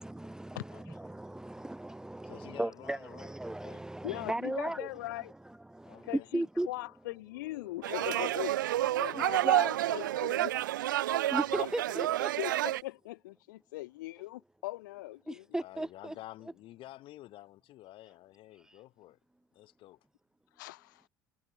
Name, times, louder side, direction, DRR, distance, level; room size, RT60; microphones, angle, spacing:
voice 1, 0.0-6.7 9.1-9.7 11.0-12.3 15.3-16.1 18.6-18.8, right 1 dB, 5° right, 0.7 m, -37 dB
voice 2, 0.5-1.0 4.0-5.3 6.0-10.5 10.9-11.2 12.4-15.4 20.5-21.1, left 18 dB, 75° left, 1.4 m, -41 dB
voice 3, 2.2-3.3 3.6-3.8 4.6-4.7 5.8-6.2 8.8-9.3 11.3-11.8 15.6-19.2 19.5-20.0, left 15 dB, 55° left, 2.9 m, -51 dB
sound 1, 7.8-12.8, right 14 dB, 80° right, 0.5 m, -29 dB
hypercardioid pair, 65°, 10 cm